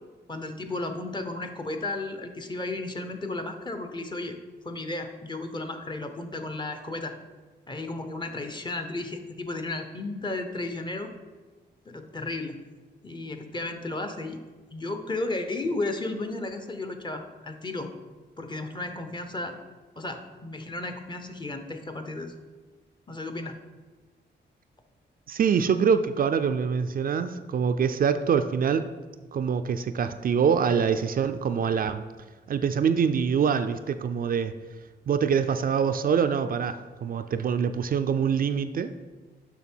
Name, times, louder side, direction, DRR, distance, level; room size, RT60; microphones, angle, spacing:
voice 1, 0.3-4.4 4.6-7.2 7.7-11.1 11.9-12.6 13.0-14.4 14.7-17.9 18.4-19.5 20.0-22.3 23.1-23.6, left 2 dB, 25° left, 6 dB, 0.7 m, -34 dB
voice 2, 25.3-28.9 29.3-32.0 32.5-34.5 35.1-38.9, right 7 dB, 50° right, 9 dB, 0.4 m, -25 dB
7.0 x 5.8 x 4.5 m, 1.3 s
wide cardioid pair, 125°, 19 cm